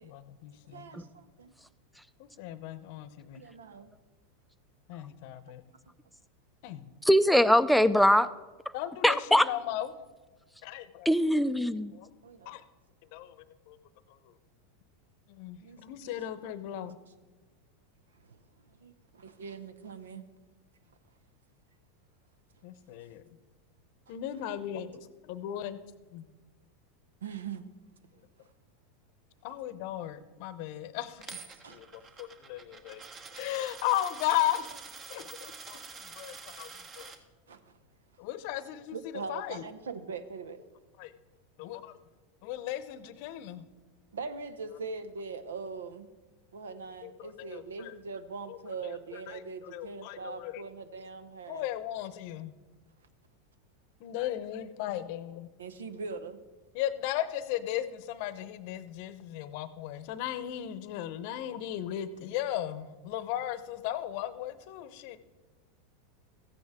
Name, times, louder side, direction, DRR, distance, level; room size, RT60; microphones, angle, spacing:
voice 1, 0.0-0.9 2.2-3.5 4.9-5.6 6.6-6.9 8.7-9.9 10.6-11.1 11.9-12.1 12.5-12.6 13.1-13.3 13.7-13.8 15.3-17.0 22.6-23.2 24.1-25.8 26.1-26.2 29.4-31.4 31.7-33.0 33.3-34.8 35.1-36.7 37.0-37.1 38.2-39.6 41.0-41.1 41.6-41.9 42.4-43.7 47.0-47.9 48.5-48.6 48.8-50.6 51.5-52.5 54.0-55.5 56.7-65.2, left 12 dB, 60° left, 14 dB, 0.7 m, -36 dB
voice 2, 0.7-1.5 3.4-3.9 12.2-12.6 15.6-15.8 16.1-16.9 18.2-20.3 24.1-24.2 27.2-27.6 28.4-28.5 31.5-31.8 37.5-37.8 38.9-40.6 44.1-46.1 46.5-51.7 55.6-56.4 59.9-60.0, right 4 dB, 85° right, 12 dB, 0.7 m, -42 dB
voice 3, 7.0-8.3 9.0-9.5 11.1-11.9, equal, ahead, 13 dB, 0.5 m, -22 dB
Coin (dropping), 31.2-37.2, right 4 dB, 35° right, 1.2 m, -47 dB
14.5 x 9.8 x 3.6 m, 1.2 s
hypercardioid pair, 95°, 0 cm